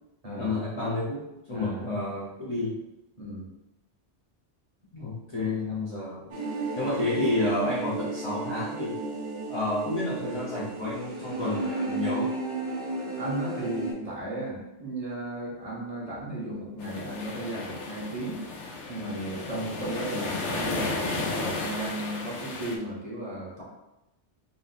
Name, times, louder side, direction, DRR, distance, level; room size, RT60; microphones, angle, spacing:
voice 1, 0.4-2.8 4.9-6.3 6.8-9.0 9.5-12.3 19.4-19.6, left 2 dB, 30° left, -8 dB, 0.7 m, -30 dB
sound 1, 6.3-13.9, right 2 dB, 55° right, 1.2 m, -33 dB
voice 2, 13.1-18.4 18.9-23.6, right 1 dB, 30° right, -5 dB, 1.1 m, -35 dB
sound 2, 16.8-22.8, left 3 dB, 80° left, 1.0 m, -34 dB
3.9 x 2.0 x 4.1 m, 0.92 s
omnidirectional pair, 1.2 m